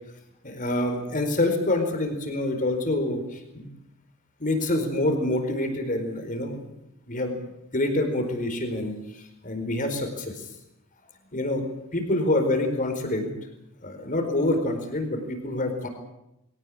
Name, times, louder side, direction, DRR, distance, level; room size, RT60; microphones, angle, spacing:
voice 1, 0.4-3.7 4.4-6.6 7.1-7.4 7.7-10.5 11.3-11.6 11.9-13.3 13.8-15.9, left 1 dB, 40° left, 6 dB, 4.6 m, -26 dB
22.5 x 18.0 x 8.6 m, 0.87 s
head